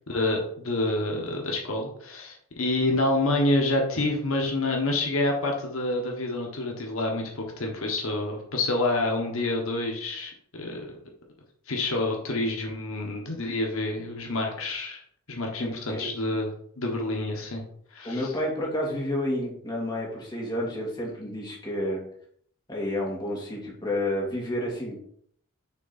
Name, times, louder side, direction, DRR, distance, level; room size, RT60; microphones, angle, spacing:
voice 1, 0.1-11.0 11.7-15.0 15.3-16.5 16.8-17.6 17.9-18.3, left 2 dB, 70° left, 1 dB, 1.2 m, -28 dB
voice 2, 15.6-16.1 18.0-22.0 22.7-25.0, left 1 dB, 20° left, -3 dB, 1.7 m, -30 dB
6.2 x 3.8 x 4.1 m, 0.63 s
head